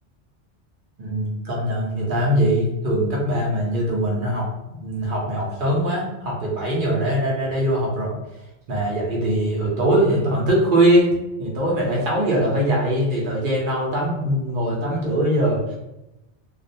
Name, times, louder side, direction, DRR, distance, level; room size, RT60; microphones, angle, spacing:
voice 1, 1.0-8.1 8.7-11.1 11.4-15.8, right 1 dB, 55° right, -3 dB, 0.8 m, -22 dB
2.4 x 2.1 x 2.6 m, 0.93 s
omnidirectional pair, 1.2 m